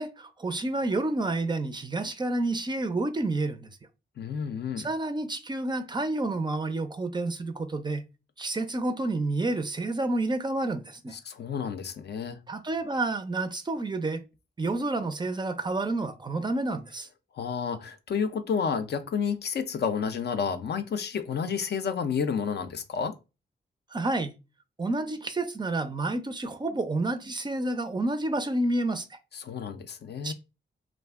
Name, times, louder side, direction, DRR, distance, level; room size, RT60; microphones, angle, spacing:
voice 1, 0.0-3.8 4.8-8.0 8.4-11.2 12.5-14.2 14.6-17.1 23.9-24.3 24.8-29.2 30.2-30.3, right 2 dB, 25° right, 0.4 m, -29 dB
voice 2, 4.2-4.9 11.2-12.4 17.3-23.2 29.4-30.3, left 6 dB, 60° left, 0.4 m, -30 dB
2.4 x 2.1 x 3.4 m
wide cardioid pair, 105°, 19 cm